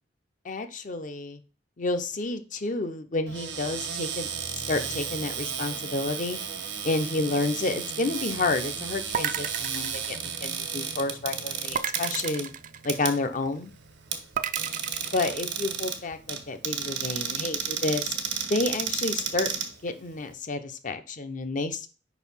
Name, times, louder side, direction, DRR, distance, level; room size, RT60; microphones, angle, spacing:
voice 1, 0.4-1.4 1.8-4.3 4.7-6.4 6.8-12.5 12.8-13.7 15.1-18.1 18.5-19.5 19.8-21.9, left 2 dB, 45° left, 8 dB, 0.7 m, -30 dB
Cupboard open or close, 3.3-20.3, right 7 dB, 90° right, 1.4 m, -33 dB
sound 1, 9.1-10.9 11.7-13.4 14.4-15.3, right 8 dB, 45° right, 0.4 m, -33 dB
5.4 x 4.1 x 5.5 m, 0.36 s
head